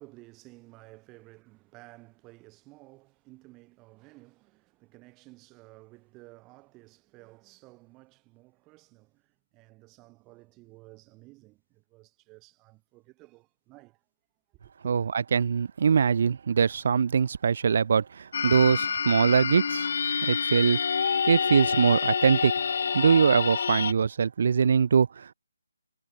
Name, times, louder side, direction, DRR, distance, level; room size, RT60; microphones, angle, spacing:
voice 1, 0.0-14.0 14.5-14.9, right 22 dB, 15° right, 7.1 m, -54 dB
voice 2, 15.3-19.9 20.2-20.8 21.3-22.5 22.9-25.3, right 6 dB, 50° right, 0.8 m, -22 dB
sound 1, 18.3-23.9, left 6 dB, 50° left, 0.4 m, -27 dB
figure-of-eight pair, 160°, 0 cm